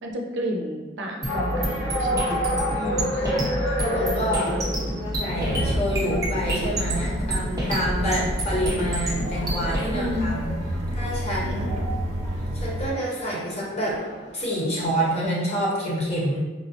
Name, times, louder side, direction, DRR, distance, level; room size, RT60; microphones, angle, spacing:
voice 1, 0.0-2.9 3.7-5.0 6.3-6.5 9.9-10.3 11.4-11.9, equal, 85° right, 0 dB, 0.6 m, -32 dB
sound 1, 1.2-9.9, right 1 dB, 20° right, 0.7 m, -28 dB
sound 2, 1.3-15.2, equal, 85° left, 1.0 m, -32 dB
voice 2, 2.7-4.6 5.2-10.6 10.9-11.8 12.5-14.0 14.3-16.4, equal, 35° left, -5 dB, 0.9 m, -28 dB
sound 3, 5.4-12.9, right 1 dB, 35° right, 0.3 m, -31 dB
4.6 x 2.0 x 2.8 m, 1.2 s
head